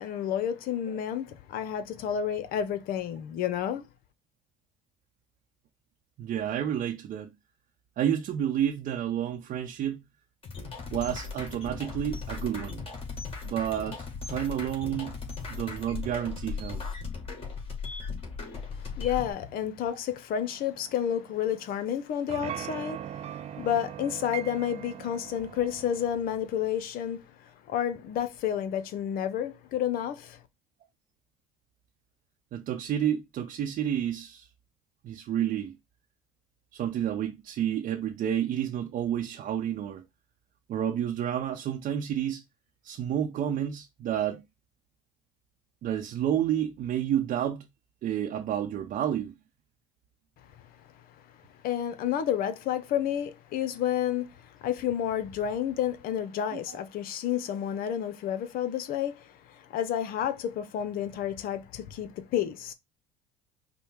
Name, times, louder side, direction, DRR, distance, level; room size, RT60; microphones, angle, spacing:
voice 1, 0.0-3.8 18.7-30.4 51.6-62.7, left 10 dB, 60° left, 0.8 m, -30 dB
voice 2, 6.2-7.3 8.0-10.0 10.9-12.8 13.4-15.1 15.5-16.8 32.5-34.5 35.0-35.8 36.7-40.0 40.7-42.4 42.8-44.4 45.8-47.7 48.0-49.3 56.5-56.8, right 10 dB, 55° right, 0.7 m, -30 dB
sound 1, 10.4-19.3, left 4 dB, 35° left, 2.1 m, -37 dB
sound 2, 20.4-21.8 22.3-26.1, right 10 dB, 40° right, 0.4 m, -41 dB
5.2 x 2.2 x 4.6 m
supercardioid pair, 90°, 17 cm